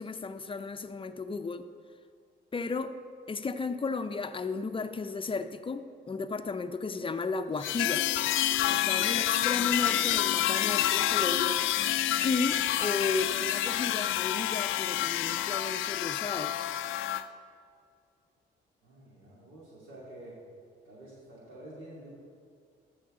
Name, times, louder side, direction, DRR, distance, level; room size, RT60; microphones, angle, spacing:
voice 1, 0.0-1.6 2.5-2.9 3.3-8.1 8.7-11.6 12.2-16.7, left 4 dB, 25° left, 9 dB, 0.6 m, -34 dB
sound 1, 7.6-17.2, left 12 dB, 80° left, 0.4 m, -28 dB
voice 2, 18.8-20.4 20.8-22.1, right 1 dB, 80° right, -6 dB, 2.7 m, -48 dB
14.0 x 6.4 x 3.8 m, 2.2 s
cardioid pair, 90°, 20 cm